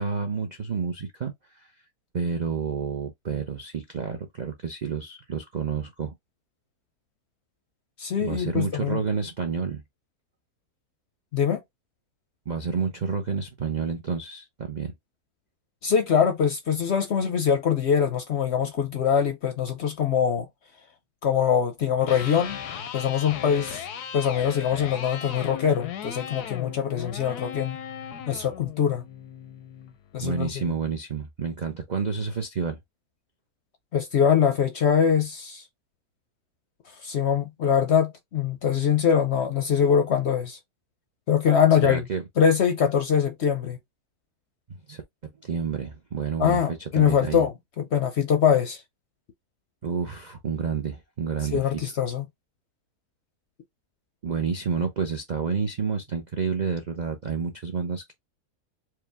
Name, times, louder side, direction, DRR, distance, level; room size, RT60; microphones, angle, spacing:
voice 1, 0.0-1.7 2.1-6.1 8.2-9.8 12.5-14.9 30.2-32.8 41.8-42.2 44.9-45.0 45.4-47.4 49.8-51.6 54.2-58.1, right 5 dB, 55° right, 0.4 m, -29 dB
voice 2, 8.0-9.0 11.3-11.6 15.8-20.5 21.2-22.6 22.9-23.9 24.1-27.8 28.3-29.0 30.1-30.6 33.9-35.6 37.0-40.6 41.3-42.1 42.4-43.8 46.4-48.8 51.5-52.2, left 8 dB, 60° left, 0.7 m, -23 dB
Electric guitar, 22.0-30.0, left 9 dB, 90° left, 1.3 m, -37 dB
4.7 x 2.2 x 3.4 m
omnidirectional pair, 1.6 m